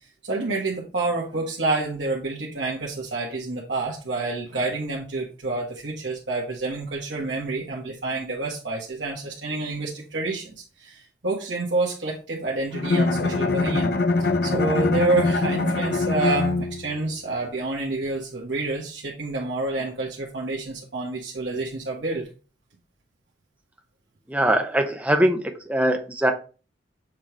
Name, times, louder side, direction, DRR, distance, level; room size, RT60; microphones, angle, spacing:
voice 1, 0.2-13.9 14.2-22.3, right 2 dB, 75° right, -5 dB, 1.4 m, -28 dB
Bowed string instrument, 12.7-17.0, left 3 dB, 55° left, 0.6 m, -23 dB
voice 2, 24.3-26.3, right 1 dB, 10° right, 4 dB, 0.8 m, -22 dB
7.4 x 3.1 x 4.8 m, 0.35 s
head